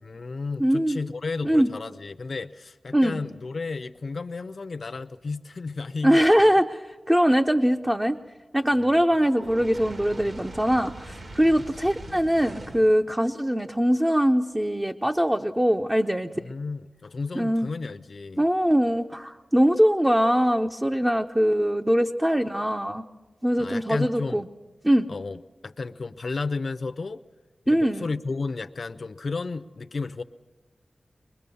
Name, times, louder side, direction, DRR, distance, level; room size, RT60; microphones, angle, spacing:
voice 1, 0.0-6.5 8.8-9.0 12.1-12.2 16.3-18.5 23.6-24.4 25.1-27.2 27.7-30.2, left 4 dB, 60° left, 10 dB, 0.6 m, -33 dB
voice 2, 0.6-1.0 1.4-1.7 2.9-3.2 6.0-8.2 8.5-16.5 17.4-17.7 18.4-23.0 23.4-24.4 24.8-25.1 27.7-28.1, equal, 10° right, 4 dB, 0.6 m, -22 dB
Fire, 9.3-13.0, right 2 dB, 55° right, 2.0 m, -41 dB
23.0 x 21.0 x 6.9 m, 1.2 s
wide cardioid pair, 100°, 0 cm